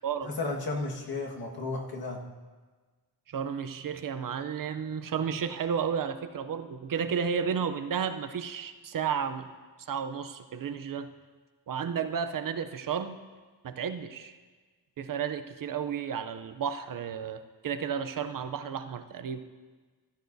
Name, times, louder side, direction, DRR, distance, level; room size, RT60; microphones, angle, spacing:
voice 1, 0.2-2.2, left 3 dB, 65° left, 0 dB, 1.6 m, -33 dB
voice 2, 3.3-9.5 9.8-11.1 11.7-13.2 13.6-14.4 15.0-19.4, right 7 dB, 55° right, 9 dB, 0.6 m, -32 dB
16.0 x 12.5 x 2.7 m, 1.4 s
wide cardioid pair, 175°, 39 cm